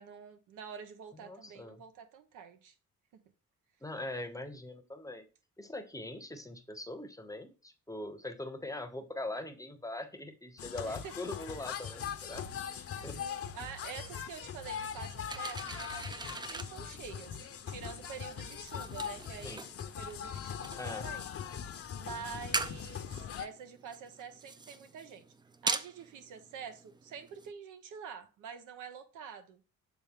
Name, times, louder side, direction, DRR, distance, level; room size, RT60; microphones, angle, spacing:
voice 1, 0.0-2.7 10.8-11.2 13.1-17.4 17.7-21.3 22.0-25.2 25.6-29.6, right 7 dB, 85° right, 0.9 m, -47 dB
voice 2, 1.2-1.8 3.8-5.3 5.6-13.3 19.4-19.7 20.8-21.1, left 1 dB, 10° left, 0.8 m, -42 dB
sound 1, 10.6-23.5, left 8 dB, 50° left, 0.7 m, -41 dB
sound 2, 11.7-15.0 15.3-16.8, right 8 dB, 35° right, 0.8 m, -55 dB
sound 3, 15.2-27.5, right 3 dB, 15° right, 0.4 m, -42 dB
7.1 x 3.6 x 3.6 m
cardioid pair, 90°, 30 cm